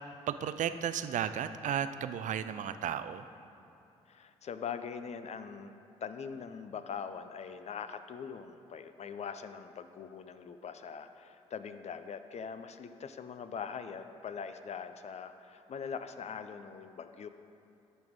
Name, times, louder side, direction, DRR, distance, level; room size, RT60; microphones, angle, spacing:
voice 1, 0.3-3.3, right 9 dB, 55° right, 12 dB, 0.4 m, -34 dB
voice 2, 4.1-5.7 6.0-17.3, left 6 dB, 45° left, 10 dB, 0.5 m, -42 dB
11.0 x 6.1 x 3.6 m, 2.8 s
hypercardioid pair, 45°, 15 cm